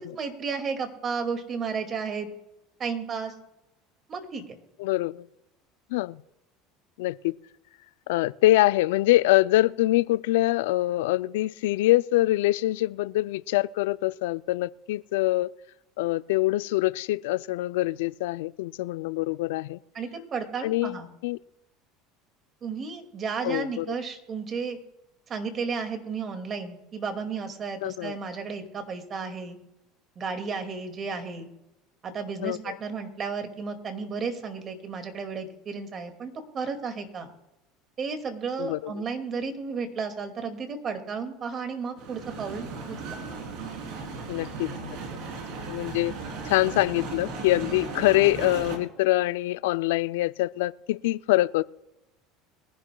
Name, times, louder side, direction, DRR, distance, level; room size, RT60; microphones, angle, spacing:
voice 1, 0.2-2.3 2.8-3.3 4.1-4.4 19.9-21.1 22.6-24.8 25.3-29.6 30.2-31.5 32.0-37.3 38.0-43.2, right 5 dB, 40° right, 2.1 m, -33 dB
voice 2, 4.8-5.3 5.9-6.2 7.0-7.4 8.1-15.5 16.0-19.8 20.6-21.0 21.2-21.4 23.4-23.9 27.8-28.1 32.4-32.8 38.6-38.9 44.3-45.0 45.7-46.1 46.4-51.6, left 17 dB, 80° left, 0.3 m, -24 dB
sound 1, 42.0-48.8, right 4 dB, 65° right, 3.2 m, -36 dB
23.0 x 11.0 x 2.3 m
supercardioid pair, 100°, 0 cm